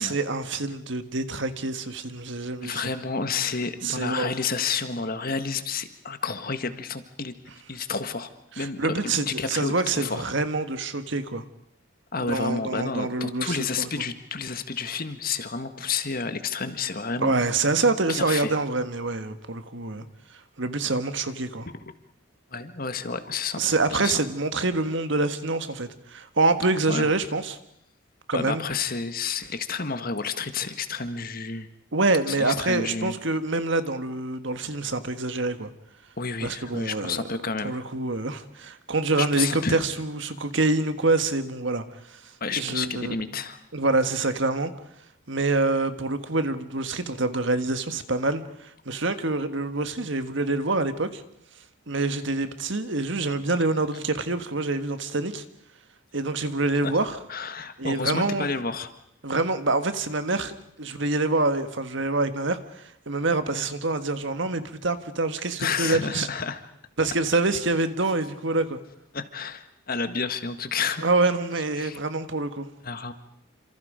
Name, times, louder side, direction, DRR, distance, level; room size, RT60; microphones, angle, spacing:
voice 1, 0.0-2.8 3.8-4.3 8.6-11.4 12.2-13.9 17.2-20.0 20.6-21.7 23.6-27.6 28.3-28.6 31.9-35.7 36.4-37.3 37.6-43.1 43.7-44.7 45.3-51.2 51.9-55.4 56.1-57.2 57.8-58.5 59.2-66.3 67.0-68.8 71.0-72.7, right 3 dB, 60° right, 1.6 m, -26 dB
voice 2, 2.6-7.3 7.7-10.2 12.1-17.4 18.1-18.5 21.7-21.8 22.5-23.6 24.0-24.1 26.9-27.1 28.3-31.7 32.3-33.1 36.2-37.8 39.2-39.8 42.4-43.6 56.8-56.9 57.3-58.9 65.6-66.6 69.1-71.0 71.8-72.0 72.8-73.1, left 5 dB, 45° left, 1.6 m, -30 dB
28.5 x 26.5 x 5.1 m
head